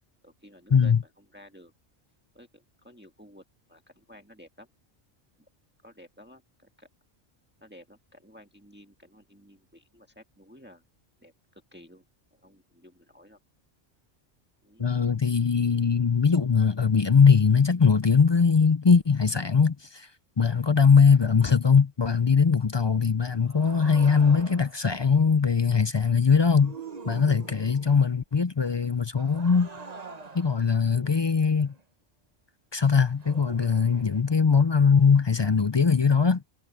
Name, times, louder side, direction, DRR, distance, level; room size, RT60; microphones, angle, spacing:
voice 1, 0.0-1.7 2.3-3.4 3.7-4.7 5.8-6.9 7.6-10.8 11.2-12.0 12.3-13.4 14.6-14.9, equal, 10° right, 1.7 m, -53 dB
voice 2, 14.8-20.1 20.4-26.8 27.1-29.7 30.3-31.7 32.7-36.4, left 6 dB, 35° left, 0.4 m, -21 dB
sound 1, 23.4-24.9 26.3-28.0 29.2-31.8 33.2-34.2, right 4 dB, 40° right, 1.4 m, -44 dB
omnidirectional pair, 1.1 m